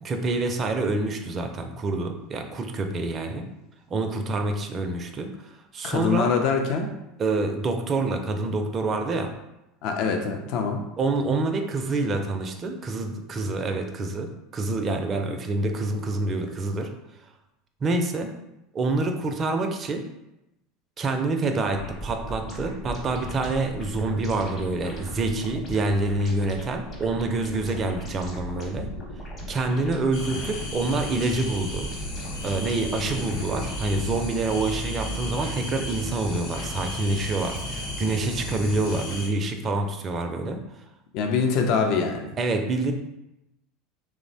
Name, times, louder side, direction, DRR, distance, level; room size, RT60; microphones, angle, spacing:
voice 1, 0.0-3.5 3.9-6.3 7.2-9.3 11.0-16.9 17.8-18.3 18.7-20.0 21.0-28.9 29.5-31.9 32.4-40.6 42.4-42.9, right 2 dB, 35° right, 5 dB, 0.4 m, -27 dB
voice 2, 5.8-6.9 9.8-10.8 33.2-33.3 41.1-42.3, left 5 dB, 60° left, 3 dB, 0.4 m, -24 dB
sound 1, 21.7-34.0, equal, 40° left, 0.8 m, -38 dB
sound 2, 30.1-39.3, left 1 dB, 75° left, 0.9 m, -33 dB
2.9 x 2.0 x 2.6 m, 0.91 s
hypercardioid pair, 85°, 0 cm